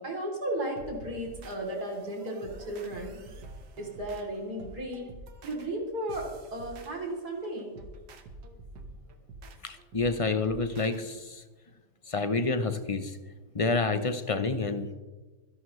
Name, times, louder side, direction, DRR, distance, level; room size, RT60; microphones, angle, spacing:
voice 1, 0.0-3.2 3.8-5.1 5.4-7.8, right 1 dB, 70° right, 0 dB, 3.8 m, -35 dB
sound 1, 0.8-11.0, right 2 dB, 90° right, 1.9 m, -48 dB
voice 2, 9.6-11.4 12.1-13.2 13.5-14.9, left 3 dB, 35° left, 9 dB, 0.5 m, -28 dB
25.5 x 11.0 x 3.2 m, 1.3 s
omnidirectional pair, 1.8 m